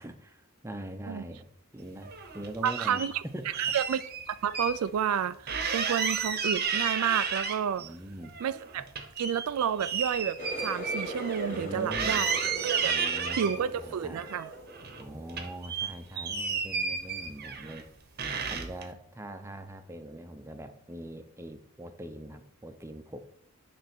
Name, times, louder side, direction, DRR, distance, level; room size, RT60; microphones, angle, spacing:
voice 1, 0.0-1.5 1.7-3.8 7.8-8.4 11.5-12.3 12.8-14.2 15.0-17.9 18.5-23.2, right 1 dB, 10° right, 0.6 m, -42 dB
sound 1, 2.0-3.1 3.5-4.8 5.1-5.2 5.5-7.9 8.2-11.6 11.9-13.6 14.2-15.0 15.3-17.8 18.2-18.8, right 5 dB, 45° right, 0.9 m, -32 dB
voice 2, 2.6-3.2 3.6-4.0 4.3-7.9 8.4-8.9 9.2-12.4 12.6-13.0 13.3-14.5, right 8 dB, 80° right, 0.4 m, -30 dB
Water tap faucet, 10.4-15.9 16.2-16.7 17.2-17.5 18.2-18.3, right 1 dB, 35° left, 1.6 m, -40 dB
9.5 x 3.4 x 6.0 m
head